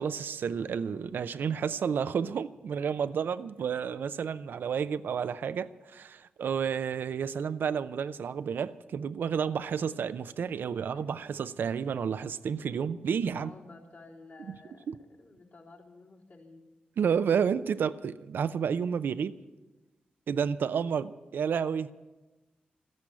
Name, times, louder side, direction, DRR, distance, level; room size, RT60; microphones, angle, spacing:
voice 1, 0.0-13.5 14.5-14.6 14.9-15.0 17.0-19.4 20.3-21.9, right 7 dB, 70° right, 12 dB, 0.5 m, -31 dB
voice 2, 10.5-11.0 13.2-16.6, left 3 dB, 60° left, -3 dB, 3.6 m, -53 dB
13.0 x 10.5 x 8.8 m, 1.1 s
supercardioid pair, 45°, 4 cm